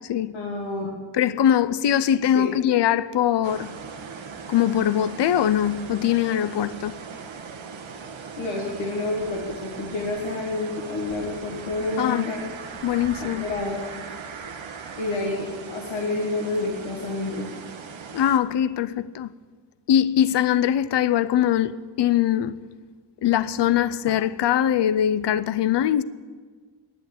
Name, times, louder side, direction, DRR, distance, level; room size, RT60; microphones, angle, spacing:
voice 1, 0.3-0.9 2.2-2.5 8.4-12.4 13.2-13.8 15.0-17.5, left 2 dB, 80° left, 1.8 m, -29 dB
voice 2, 1.1-3.7 4.5-7.0 12.0-12.3 12.8-13.5 18.1-19.3 19.9-22.5 23.2-26.0, left 10 dB, 65° left, 0.5 m, -22 dB
sound 1, 3.4-18.4, right 5 dB, 75° right, 1.3 m, -39 dB
10.5 x 9.7 x 8.8 m
wide cardioid pair, 165°, 46 cm